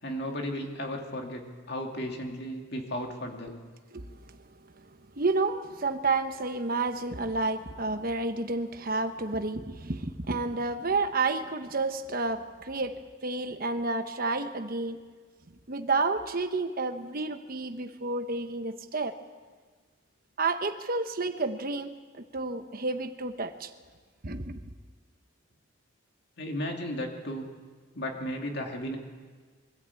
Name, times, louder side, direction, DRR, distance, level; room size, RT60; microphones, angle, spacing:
voice 1, 0.0-3.6 26.4-27.5 27.9-29.0, equal, 55° left, 2 dB, 2.5 m, -35 dB
voice 2, 3.9-4.4 5.1-15.0 15.7-19.1 20.4-21.9 22.3-23.7 24.2-24.6, right 3 dB, 45° right, 7 dB, 1.1 m, -30 dB
24.0 x 13.0 x 8.4 m, 1.5 s
head